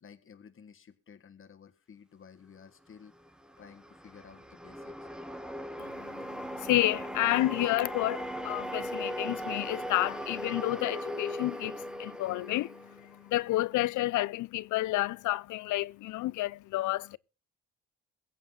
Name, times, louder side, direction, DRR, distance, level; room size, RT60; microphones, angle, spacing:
voice 1, 0.0-3.1 3.6-5.1, left 6 dB, 45° left, 1.7 m, -54 dB
sound 1, 3.2-13.5, equal, 5° right, 0.9 m, -39 dB
voice 2, 5.8-17.2, left 17 dB, 75° left, 0.5 m, -30 dB
21.5 x 8.1 x 3.8 m
cardioid pair, 90°, 30 cm